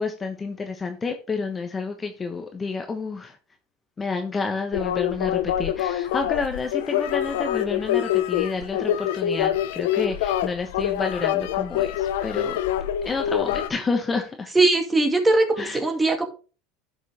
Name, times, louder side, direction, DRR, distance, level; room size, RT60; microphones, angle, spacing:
voice 1, 0.0-3.4 4.0-12.6 13.0-14.5 15.6-15.8, left 4 dB, 25° left, 5 dB, 1.2 m, -29 dB
sound 1, 4.7-13.7, left 11 dB, 75° left, 0.7 m, -25 dB
voice 2, 14.5-16.3, right 2 dB, 15° right, 4 dB, 2.3 m, -20 dB
11.0 x 6.2 x 3.4 m, 0.36 s
hypercardioid pair, 90°, 0 cm